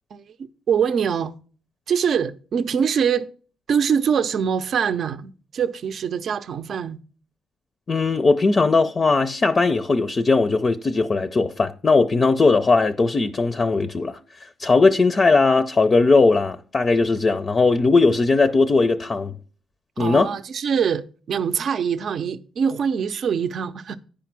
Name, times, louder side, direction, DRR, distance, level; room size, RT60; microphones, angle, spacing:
voice 1, 0.7-1.3 1.9-3.3 3.7-7.0 20.0-24.0, right 7 dB, 60° right, 0.6 m, -23 dB
voice 2, 7.9-19.3 20.0-20.3, left 3 dB, 35° left, 0.5 m, -19 dB
10.0 x 5.0 x 6.0 m
cardioid pair, 90°, 0 cm